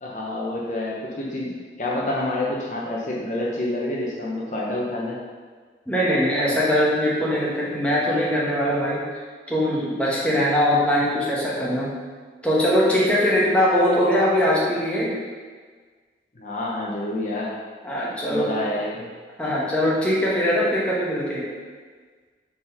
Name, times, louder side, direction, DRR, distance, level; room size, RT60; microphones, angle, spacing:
voice 1, 0.0-5.2 16.3-17.5 18.3-19.1, left 1 dB, 45° left, -4 dB, 0.8 m, -28 dB
voice 2, 5.9-9.1 9.5-11.9 12.4-15.2 17.8-18.6 19.4-21.5, equal, 5° left, -6 dB, 1.1 m, -21 dB
4.5 x 4.3 x 5.4 m, 1.5 s
head